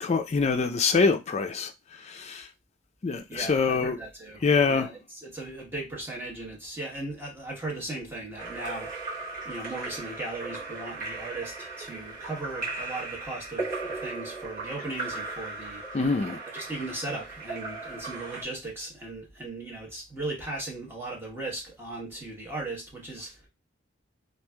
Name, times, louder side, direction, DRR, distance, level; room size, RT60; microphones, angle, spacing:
voice 1, 0.0-1.7 2.0-2.5 3.0-4.0 4.4-4.9 15.9-16.4, left 4 dB, 35° left, 0.4 m, -24 dB
voice 2, 3.3-8.9 9.4-15.8 16.5-23.4, right 2 dB, 10° right, 0.9 m, -37 dB
Splash splatter / Drip / Trickle dribble, 8.4-18.4, right 3 dB, 40° right, 1.1 m, -37 dB
3.1 x 2.4 x 2.2 m
head